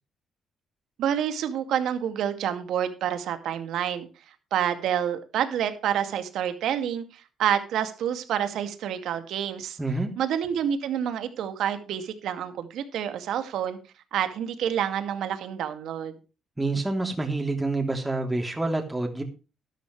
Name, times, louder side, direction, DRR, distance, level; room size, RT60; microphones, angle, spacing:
voice 1, 1.0-4.1 4.5-9.8 10.2-13.8 14.1-16.1, right 9 dB, 80° right, 9 dB, 2.2 m, -28 dB
voice 2, 9.8-10.1 16.6-19.2, right 2 dB, 15° right, 3 dB, 3.3 m, -27 dB
12.5 x 12.0 x 3.3 m, 0.32 s
cardioid pair, 90°, 0 cm